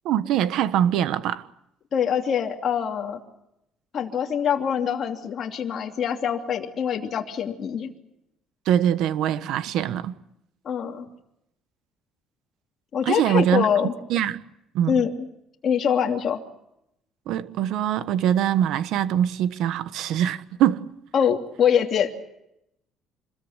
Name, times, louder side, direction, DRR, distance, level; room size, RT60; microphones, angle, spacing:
voice 1, 0.0-1.5 8.6-10.1 13.0-13.7 14.1-14.4 14.7-14.9 17.3-20.9, right 10 dB, 65° right, 1.3 m, -23 dB
voice 2, 1.9-3.2 3.9-7.9 10.6-11.1 12.9-13.9 14.9-15.1 15.6-16.4 21.1-22.2, left 8 dB, 35° left, 2.9 m, -24 dB
27.0 x 21.5 x 8.1 m
cardioid pair, 170°, 0 cm